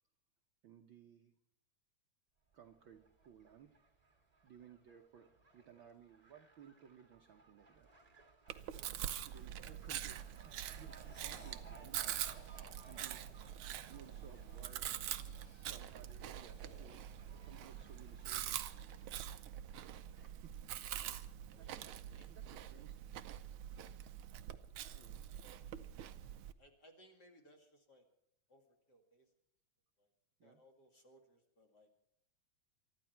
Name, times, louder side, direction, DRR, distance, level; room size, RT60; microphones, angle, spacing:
voice 1, 0.6-1.3 2.5-3.8 4.4-7.9 9.3-12.3 12.9-13.3 13.6-15.0 15.7-17.0 17.3-18.8 20.1-20.6 21.0-21.2 21.5-23.0 24.8-25.3 30.4-30.6, right 8 dB, 65° right, 4 dB, 1.2 m, -60 dB
Fowl, 2.5-19.9, right 3 dB, 15° right, 1.4 m, -63 dB
Chewing mastication, 8.5-26.5, right 11 dB, 85° right, 1.1 m, -45 dB
sound 1, 11.0-11.6 12.0-12.7 13.5-14.7 15.1-15.7 16.1-17.7, left 1 dB, 80° left, 7.1 m, -65 dB
voice 2, 22.1-22.7 25.4-25.8 26.6-28.1 28.5-29.3 30.0-30.1 30.4-32.0, equal, 35° left, 3 dB, 2.5 m, -65 dB
24.0 x 12.5 x 4.5 m, 0.71 s
omnidirectional pair, 3.4 m